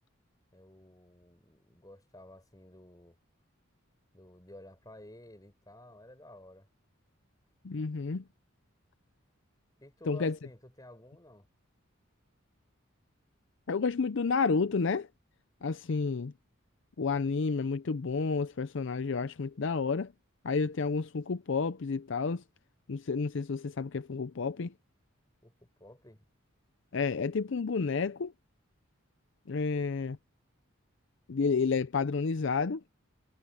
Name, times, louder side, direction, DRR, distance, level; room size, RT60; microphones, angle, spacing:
voice 1, 0.5-3.2 4.1-6.7 9.8-11.5 25.4-26.3, left 1 dB, 20° left, 6.0 m, -52 dB
voice 2, 7.6-8.2 10.1-10.3 13.7-15.1 15.6-16.3 17.0-20.1 20.4-22.4 22.9-24.7 26.9-28.3 29.5-30.2 31.3-32.8, left 4 dB, 60° left, 0.5 m, -30 dB
head